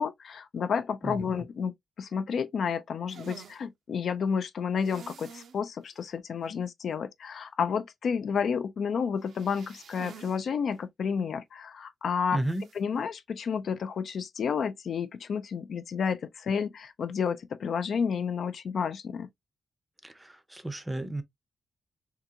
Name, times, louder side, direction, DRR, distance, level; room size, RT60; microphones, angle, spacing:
voice 1, 0.0-1.7 2.0-12.4 12.8-19.3, left 6 dB, 65° left, 0.4 m, -31 dB
sound 1, 3.1-3.6 4.8-5.6 5.9-6.0 6.4-6.5 9.2-10.4 10.7-10.8 12.4-12.8, right 7 dB, 75° right, 0.6 m, -48 dB
voice 2, 12.3-12.7 20.0-21.2, right 1 dB, 10° right, 0.5 m, -33 dB
3.7 x 2.3 x 2.7 m
cardioid pair, 110°, 0 cm